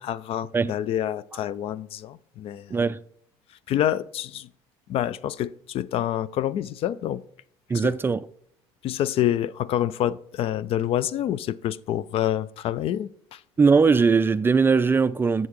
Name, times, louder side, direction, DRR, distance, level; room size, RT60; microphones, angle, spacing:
voice 1, 0.0-2.8 3.7-4.5 4.9-7.2 7.8-7.9 8.8-13.4, left 11 dB, 55° left, 0.4 m, -27 dB
voice 2, 7.7-8.3 13.6-15.5, right 5 dB, 20° right, 0.3 m, -20 dB
8.1 x 7.3 x 3.1 m
supercardioid pair, 95°, 12 cm